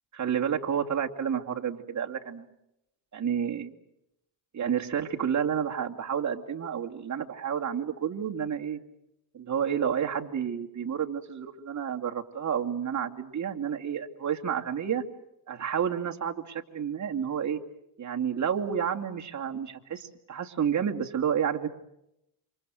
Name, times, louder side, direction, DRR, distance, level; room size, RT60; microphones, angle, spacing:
voice 1, 0.1-2.5 3.1-3.7 4.5-8.8 9.3-15.0 15.5-17.6 18.0-21.7, right 8 dB, 40° right, 3 dB, 2.5 m, -30 dB
28.5 x 26.0 x 6.4 m, 0.82 s
cardioid pair, 110°, 46 cm